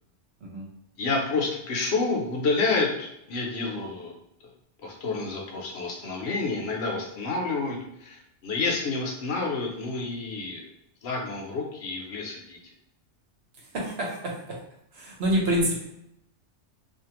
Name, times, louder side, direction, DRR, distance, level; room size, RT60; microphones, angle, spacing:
voice 1, 1.0-4.2 4.4-4.5 4.8-10.7 11.0-12.6, left 3 dB, 70° left, -1 dB, 0.9 m, -29 dB
voice 2, 13.7-14.6 14.9-15.8, equal, 65° right, -2 dB, 1.0 m, -27 dB
2.5 x 2.4 x 2.9 m, 0.78 s
omnidirectional pair, 1.2 m